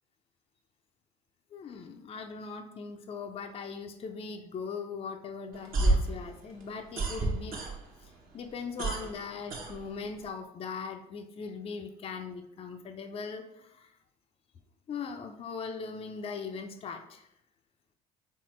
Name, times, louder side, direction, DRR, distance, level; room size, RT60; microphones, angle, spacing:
voice 1, 1.5-7.6 8.0-13.9 14.9-17.3, left 5 dB, 25° left, 5 dB, 0.5 m, -40 dB
sound 1, 5.5-8.1 8.4-10.3, right 2 dB, 45° right, 0.9 m, -30 dB
4.2 x 3.6 x 3.0 m, 0.82 s
figure-of-eight pair, 60°, 21 cm